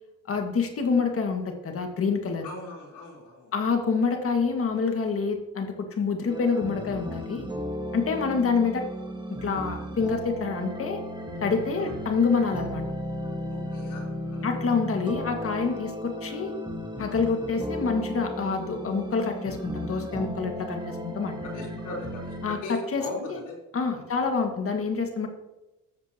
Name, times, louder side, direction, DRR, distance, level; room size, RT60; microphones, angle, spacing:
voice 1, 0.3-2.5 3.5-7.5 7.9-8.9 9.4-11.0 11.4-12.8 14.4-16.5 17.0-21.3 22.4-23.4 23.7-25.3, left 5 dB, 50° left, 4 dB, 1.9 m, -27 dB
voice 2, 2.4-3.5 11.8-11.9 13.5-14.8 21.4-23.5 23.9-24.0, left 2 dB, 90° left, -3 dB, 3.8 m, -39 dB
sound 1, 6.3-22.5, equal, 15° right, 1.6 m, -35 dB
13.0 x 7.1 x 2.9 m, 0.97 s
cardioid pair, 90°, 30 cm